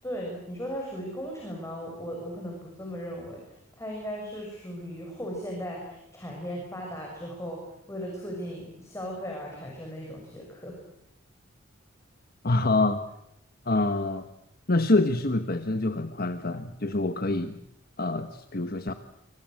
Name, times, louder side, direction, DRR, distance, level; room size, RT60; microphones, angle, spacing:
voice 1, 0.0-10.8, equal, 15° left, -1 dB, 6.6 m, -37 dB
voice 2, 12.4-13.0 13.6-14.3 14.7-17.6 18.0-18.9, left 2 dB, 45° left, 8 dB, 1.3 m, -26 dB
26.0 x 25.0 x 7.7 m, 0.78 s
head